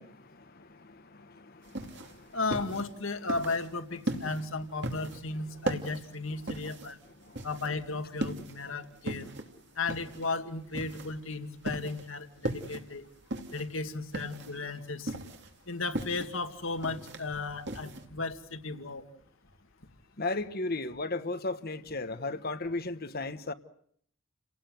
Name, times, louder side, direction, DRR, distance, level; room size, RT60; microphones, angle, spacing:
voice 1, 0.0-2.4 7.2-7.4 20.2-23.5, left 2 dB, 45° left, 1.3 m, -36 dB
sound 1, 1.6-18.0, right 1 dB, 55° right, 2.8 m, -38 dB
voice 2, 2.3-7.0 7.4-9.3 9.8-13.1 13.5-15.1 15.7-19.0, left 3 dB, 70° left, 2.2 m, -35 dB
30.0 x 19.0 x 7.9 m
head